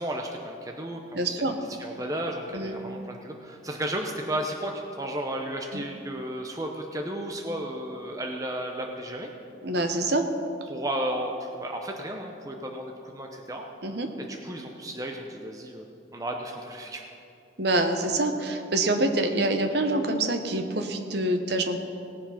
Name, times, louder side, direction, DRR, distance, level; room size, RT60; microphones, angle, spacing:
voice 1, 0.0-1.5 1.8-9.3 10.7-13.7 14.3-17.1, right 1 dB, 20° right, 2 dB, 0.7 m, -33 dB
voice 2, 1.1-1.6 2.5-2.7 5.7-5.8 9.6-10.3 13.8-14.1 17.6-21.8, right 2 dB, 60° right, 5 dB, 1.0 m, -26 dB
18.0 x 7.1 x 5.7 m, 2.7 s
head